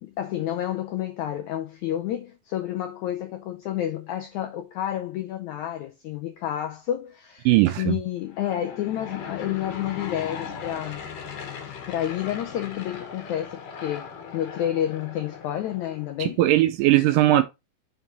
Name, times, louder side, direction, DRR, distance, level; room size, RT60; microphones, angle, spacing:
voice 1, 0.0-11.0 11.9-16.4, left 11 dB, 80° left, 1.7 m, -30 dB
voice 2, 7.5-8.0 16.2-17.4, right 15 dB, 80° right, 2.0 m, -19 dB
Aircraft / Engine, 8.2-16.2, left 6 dB, 65° left, 2.7 m, -39 dB
5.9 x 4.5 x 3.9 m
omnidirectional pair, 4.2 m